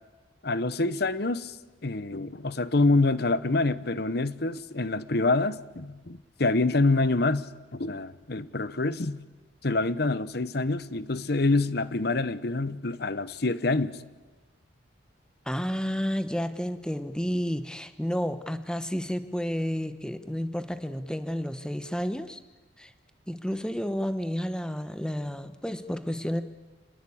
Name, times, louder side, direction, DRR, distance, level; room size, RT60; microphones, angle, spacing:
voice 1, 0.4-1.6 1.8-9.2 9.6-14.0, left 2 dB, 55° left, 1.0 m, -26 dB
voice 2, 15.5-22.4 22.8-22.9 23.3-26.4, equal, 5° left, 1.2 m, -31 dB
27.5 x 21.0 x 8.6 m
head